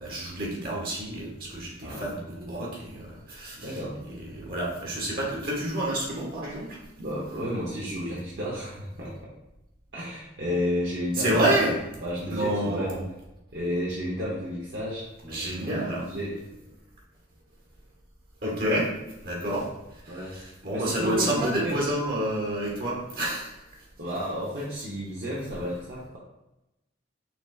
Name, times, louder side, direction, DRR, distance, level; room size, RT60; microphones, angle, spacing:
voice 1, 0.0-3.8 4.2-6.8 11.1-11.8 12.2-13.0 15.3-16.1 18.4-18.9 19.2-19.7 20.1-23.5, right 1 dB, 55° right, -3 dB, 1.4 m, -29 dB
voice 2, 3.6-4.1 7.0-9.3 9.9-11.4 12.0-12.9 13.5-16.4 19.5-19.6 20.1-20.4 20.7-21.8 24.0-26.2, equal, 70° right, -6 dB, 0.9 m, -32 dB
5.9 x 3.3 x 2.4 m, 0.94 s
head